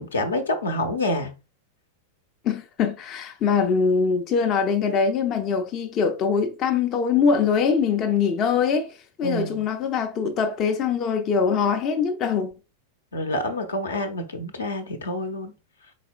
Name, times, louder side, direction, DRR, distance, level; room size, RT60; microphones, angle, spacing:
voice 1, 0.0-1.3 9.2-9.6 13.1-15.5, left 1 dB, 70° left, 0.7 m, -27 dB
voice 2, 2.4-12.5, left 6 dB, 35° left, 0.5 m, -23 dB
4.1 x 4.1 x 2.3 m
figure-of-eight pair, 90°, 0 cm